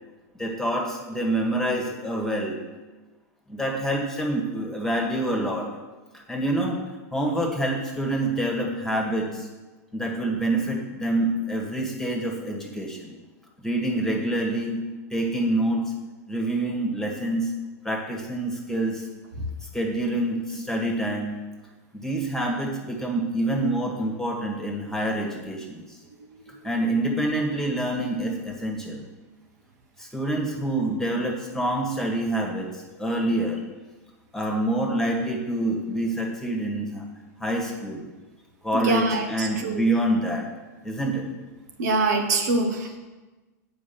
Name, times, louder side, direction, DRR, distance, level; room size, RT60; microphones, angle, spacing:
voice 1, 0.4-2.6 3.5-5.7 6.1-6.8 7.1-9.5 9.9-13.2 13.6-14.8 15.1-15.9 16.3-17.5 17.8-19.1 19.7-21.4 22.0-25.8 26.6-29.0 30.0-32.7 33.0-33.6 34.3-37.0 37.4-38.1 38.6-40.4 40.8-41.3, right 1 dB, 5° left, 0 dB, 1.7 m, -26 dB
voice 2, 38.7-39.8 41.8-43.0, right 3 dB, 75° right, 3 dB, 1.4 m, -24 dB
8.6 x 5.0 x 7.0 m, 1.2 s
hypercardioid pair, 130°, 9 cm